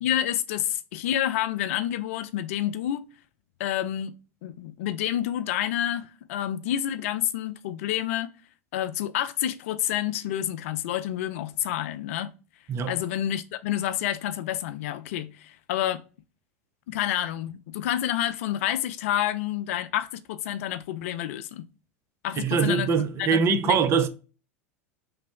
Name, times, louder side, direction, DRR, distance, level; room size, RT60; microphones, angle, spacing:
voice 1, 0.0-3.1 3.6-8.3 8.7-12.3 12.9-16.0 16.9-21.7 22.2-23.8, left 11 dB, 70° left, 0.3 m, -29 dB
voice 2, 22.4-24.1, right 6 dB, 35° right, 0.4 m, -23 dB
3.2 x 2.0 x 2.8 m
hypercardioid pair, 90°, 8 cm